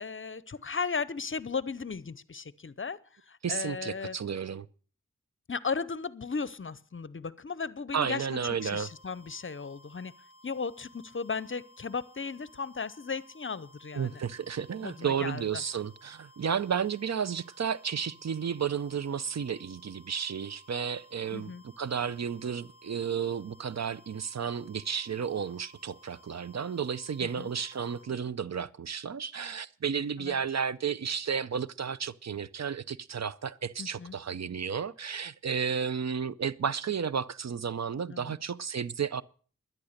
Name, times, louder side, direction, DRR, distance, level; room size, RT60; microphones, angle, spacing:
voice 1, 0.0-3.0 3.3-4.2 5.5-10.1 10.4-14.2 14.8-15.4 21.3-21.6 27.2-27.5 30.2-30.3 33.8-34.2 38.1-38.4, left 5 dB, 40° left, 0.7 m, -36 dB
voice 2, 3.4-4.7 7.9-8.9 13.9-21.5 21.8-39.2, right 7 dB, 60° right, 0.6 m, -32 dB
sound 1, 8.6-28.1, equal, 75° right, 6.5 m, -58 dB
11.5 x 11.0 x 6.6 m
cardioid pair, 50°, 31 cm